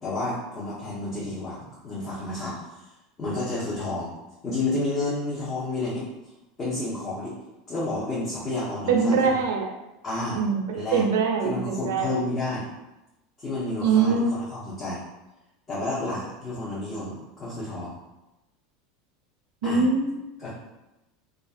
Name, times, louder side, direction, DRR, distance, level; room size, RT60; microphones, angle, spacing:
voice 1, 0.0-2.6 3.2-4.1 4.4-6.1 6.6-7.4 7.7-9.2 10.0-10.4 10.7-11.1 11.4-12.6 13.4-15.0 15.7-18.0 19.6-19.9 20.4-20.5, left 2 dB, 35° left, -8 dB, 0.8 m, -30 dB
voice 2, 8.9-9.7 10.3-12.1 13.8-14.3 19.6-20.3, right 5 dB, 70° right, 2 dB, 0.4 m, -23 dB
2.4 x 2.3 x 2.4 m, 0.98 s
hypercardioid pair, 80°, 0 cm